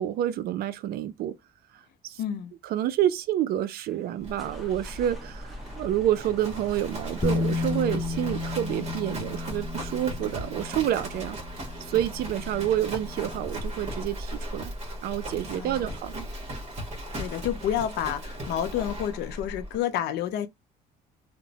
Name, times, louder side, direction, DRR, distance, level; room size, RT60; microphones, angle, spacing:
voice 1, 0.0-1.4 2.0-2.2 2.6-11.4 11.9-14.7 15.0-16.3, right 11 dB, 65° right, 0.4 m, -28 dB
voice 2, 2.2-2.5 15.5-15.8 17.2-20.5, left 10 dB, 80° left, 0.5 m, -29 dB
sound 1, 3.9-9.5, right 1 dB, ahead, 0.9 m, -48 dB
Livestock farm animals working animals, 4.2-19.8, equal, 40° right, 1.2 m, -37 dB
Bass guitar, 7.2-13.5, left 3 dB, 25° left, 0.5 m, -33 dB
2.9 x 2.1 x 2.7 m
cardioid pair, 110°, 17 cm